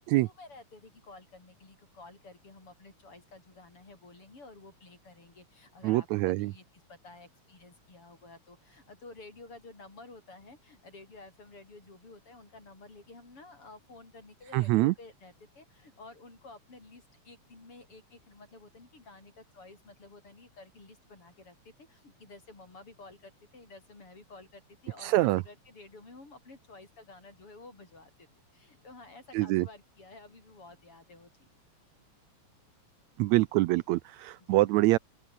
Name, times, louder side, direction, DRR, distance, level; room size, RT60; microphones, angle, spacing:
voice 1, 0.1-31.5 34.4-34.7, left 3 dB, 45° left, 7.4 m, -52 dB
voice 2, 5.8-6.5 14.5-14.9 25.0-25.4 29.3-29.7 33.2-35.0, right 19 dB, 80° right, 1.7 m, -25 dB
open air
omnidirectional pair, 3.4 m